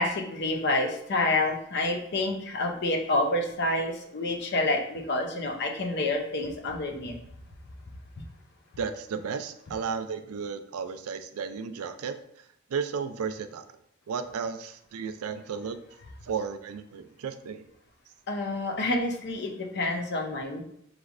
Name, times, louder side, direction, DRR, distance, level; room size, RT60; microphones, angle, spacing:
voice 1, 0.0-7.1 18.3-20.6, left 2 dB, 50° left, 4 dB, 0.6 m, -28 dB
voice 2, 8.8-12.2 12.7-13.7 14.1-15.8 16.2-17.7, right 6 dB, 85° right, 10 dB, 0.4 m, -34 dB
5.0 x 3.1 x 2.4 m, 0.72 s
head